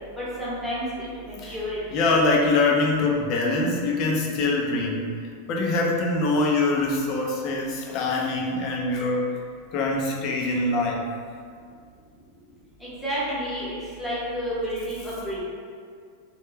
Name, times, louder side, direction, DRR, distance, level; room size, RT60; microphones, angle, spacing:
voice 1, 0.2-1.8 12.8-15.4, equal, ahead, -11 dB, 0.9 m, -30 dB
voice 2, 1.9-5.0 5.5-9.3 9.7-11.0, left 2 dB, 40° left, -1 dB, 0.4 m, -23 dB
2.2 x 2.2 x 3.1 m, 2.1 s
supercardioid pair, 150°, 0 cm